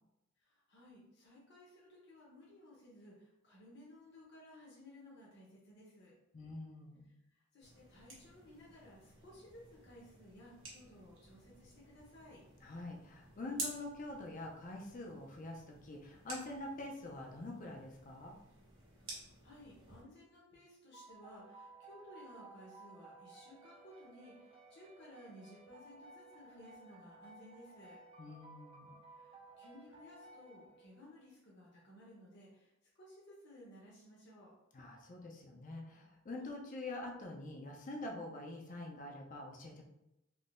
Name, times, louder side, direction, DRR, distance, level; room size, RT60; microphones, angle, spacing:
voice 1, 0.4-6.1 7.5-12.4 19.0-28.0 29.0-34.6, left 1 dB, 60° left, -5 dB, 0.9 m, -58 dB
voice 2, 6.3-7.1 12.6-18.4 28.2-29.0 34.7-39.8, left 2 dB, 40° left, 0 dB, 0.5 m, -46 dB
sound 1, 7.6-20.0, right 2 dB, 75° right, 1.1 m, -52 dB
sound 2, 20.9-31.3, right 3 dB, 30° right, 0.4 m, -57 dB
3.6 x 2.6 x 2.5 m, 0.86 s
head